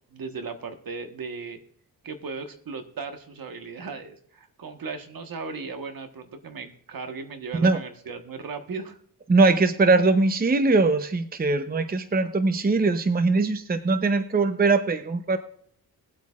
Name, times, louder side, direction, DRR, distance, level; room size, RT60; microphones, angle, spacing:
voice 1, 0.1-1.6 2.0-9.0, right 4 dB, 60° right, 7 dB, 1.4 m, -37 dB
voice 2, 9.3-15.4, right 3 dB, 25° right, 10 dB, 0.7 m, -21 dB
21.5 x 8.1 x 2.4 m, 0.65 s
cardioid pair, 80°, 39 cm